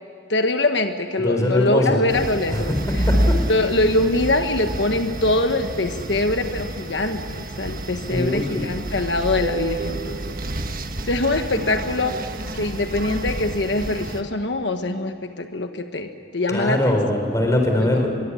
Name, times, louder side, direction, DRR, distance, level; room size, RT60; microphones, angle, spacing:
voice 1, 0.3-2.7 3.5-10.3 11.1-12.2 12.5-17.0 17.8-18.1, left 2 dB, 85° left, 7 dB, 1.4 m, -23 dB
voice 2, 1.2-2.0 2.5-2.6 3.1-3.4 8.1-8.4 16.5-18.1, left 1 dB, 20° left, 2 dB, 4.2 m, -21 dB
sound 1, 2.1-14.2, right 1 dB, 50° right, 1.5 m, -28 dB
24.0 x 23.0 x 9.8 m, 2.4 s
head